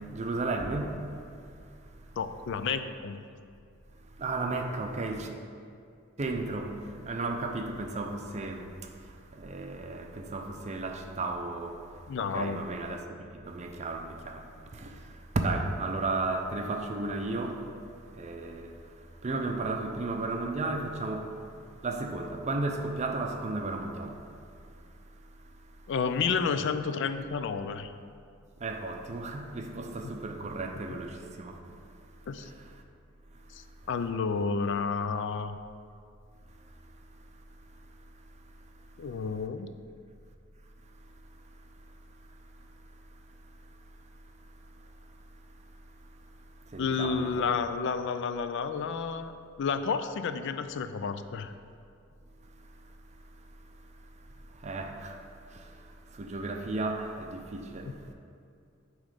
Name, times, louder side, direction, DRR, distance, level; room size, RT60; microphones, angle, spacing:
voice 1, 0.1-1.0 4.2-5.3 6.2-6.8 7.1-8.7 9.3-11.8 12.2-14.4 14.7-15.0 15.3-17.6 18.1-18.8 19.2-21.3 21.8-24.2 28.6-31.6 46.7-47.5 54.6-55.2 55.5-55.6 56.1-57.9, right 2 dB, 35° right, 0.5 m, -33 dB
voice 2, 2.2-3.2 12.1-12.7 25.9-27.9 32.3-32.5 33.9-35.6 39.0-39.7 46.8-49.3 49.6-51.5 57.8-57.9, left 5 dB, 60° left, 0.4 m, -30 dB
8.9 x 3.1 x 5.0 m
head